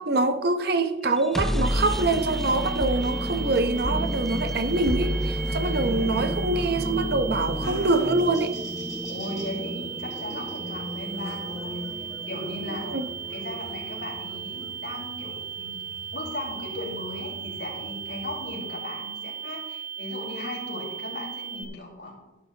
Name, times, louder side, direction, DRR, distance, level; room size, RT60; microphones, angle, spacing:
voice 1, 0.0-8.5 12.6-13.1, right 2 dB, 60° right, 0.9 m, -25 dB
sound 1, 1.1-14.9, equal, ahead, 0.3 m, -31 dB
sound 2, 1.6-21.6, right 8 dB, 45° right, 1.4 m, -37 dB
Buzz, 4.5-18.5, equal, 20° left, 2.5 m, -44 dB
voice 2, 5.8-6.3 9.1-11.9 12.3-13.0 13.3-15.7 16.1-22.1, left 1 dB, 70° left, 4.0 m, -37 dB
12.5 x 11.5 x 2.9 m
head